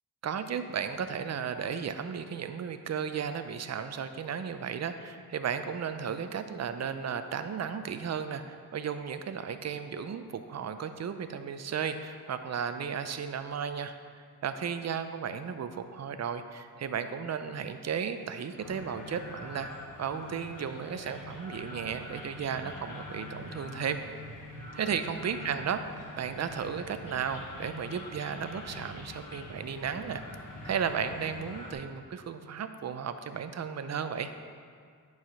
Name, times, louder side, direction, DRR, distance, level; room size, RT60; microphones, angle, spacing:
voice 1, 0.2-13.9 14.4-19.7 20.0-24.0 24.7-25.8 26.2-30.2 30.6-34.3, right 7 dB, 45° right, 9 dB, 0.5 m, -34 dB
sound 1, 18.6-31.7, left 2 dB, 55° left, 1.2 m, -44 dB
8.8 x 4.8 x 5.6 m, 2.1 s
wide cardioid pair, 95°, 39 cm